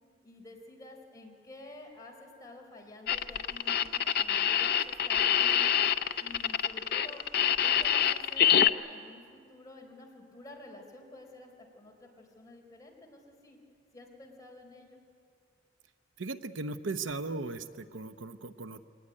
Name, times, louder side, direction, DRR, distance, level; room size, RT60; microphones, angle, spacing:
voice 1, 0.2-5.8 6.2-7.2 7.6-13.6 13.9-15.0, left 2 dB, 20° left, 0 dB, 3.8 m, -50 dB
sound 1, 3.1-8.7, left 9 dB, 55° left, 0.6 m, -25 dB
voice 2, 16.2-18.8, right 3 dB, 80° right, 10 dB, 0.8 m, -37 dB
22.5 x 18.5 x 9.7 m, 2.3 s
head